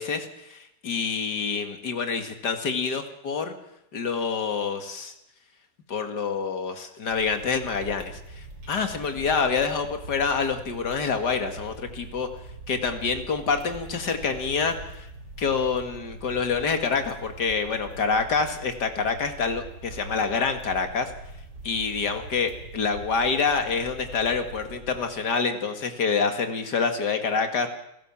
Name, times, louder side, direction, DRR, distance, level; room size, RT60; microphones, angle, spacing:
voice 1, 0.0-3.5 3.9-5.1 5.9-12.3 12.7-15.1 15.4-21.1 21.6-27.7, left 5 dB, 65° left, 6 dB, 2.6 m, -27 dB
sound 1, 7.1-25.4, right 2 dB, 70° right, 5.0 m, -43 dB
29.5 x 15.5 x 7.4 m, 0.80 s
omnidirectional pair, 1.9 m